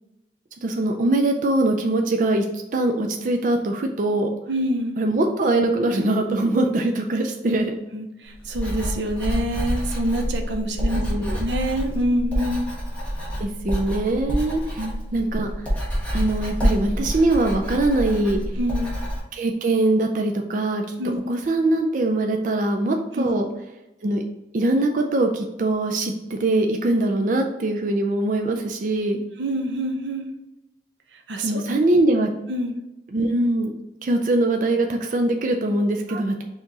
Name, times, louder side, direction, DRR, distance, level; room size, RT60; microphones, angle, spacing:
voice 1, 0.6-2.4 2.7-4.3 5.0-7.8 10.8-11.4 13.4-14.8 15.1-15.7 16.1-18.4 19.3-20.8 21.3-23.5 24.0-24.2 24.5-29.2 31.4-32.3 33.1-33.7 34.0-36.4, right 2 dB, 45° right, 3 dB, 0.4 m, -22 dB
voice 2, 4.5-5.0 7.4-7.6 7.9-11.0 11.3-12.7 14.8-15.0 18.6-18.9 21.0-21.2 23.1-23.3 29.4-30.3 31.1-31.5 32.5-32.8 36.1-36.2, equal, 85° right, 5 dB, 0.6 m, -26 dB
Writing, 8.4-19.2, equal, 10° left, 1.3 m, -27 dB
4.5 x 2.9 x 3.7 m, 0.98 s
head